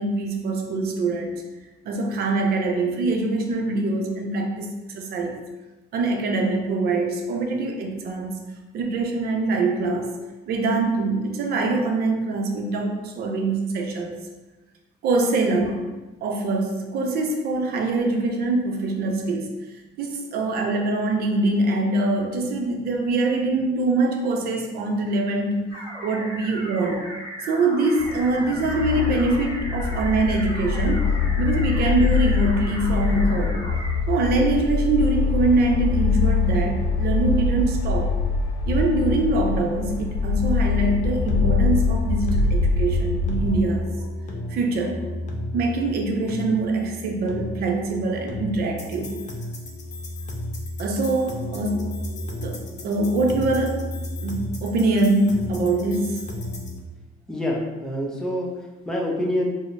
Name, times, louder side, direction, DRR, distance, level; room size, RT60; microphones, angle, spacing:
voice 1, 0.0-1.4 1.8-5.4 5.9-8.4 8.7-10.1 10.5-14.1 15.0-15.9 16.2-19.5 20.0-25.7 26.0-27.1 27.5-31.1 31.4-33.7 34.1-38.1 38.7-43.9 44.5-45.0 45.5-49.2 50.8-52.0 52.4-56.2, right 2 dB, 65° right, 2 dB, 0.6 m, -24 dB
sound 1, 25.7-33.9, equal, 20° right, 1.3 m, -37 dB
sound 2, 28.0-43.6, left 5 dB, 80° left, 0.4 m, -23 dB
sound 3, 40.8-56.8, left 1 dB, 45° left, 0.7 m, -33 dB
voice 2, 57.3-59.5, left 1 dB, 5° left, -2 dB, 0.6 m, -26 dB
4.8 x 2.0 x 2.5 m, 1.1 s
cardioid pair, 110°, 17 cm